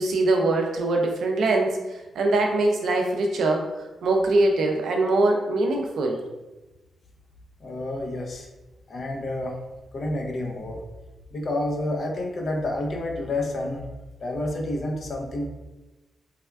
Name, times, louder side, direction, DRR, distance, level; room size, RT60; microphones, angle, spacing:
voice 1, 0.0-1.8 2.2-3.6 4.0-6.2, right 2 dB, 75° right, 2 dB, 0.4 m, -22 dB
voice 2, 7.6-8.5 8.9-9.5 9.9-10.8 11.3-13.9 14.2-15.5, left 1 dB, 60° left, 1 dB, 0.6 m, -29 dB
3.4 x 2.3 x 2.2 m, 1.1 s
supercardioid pair, 55°, 0 cm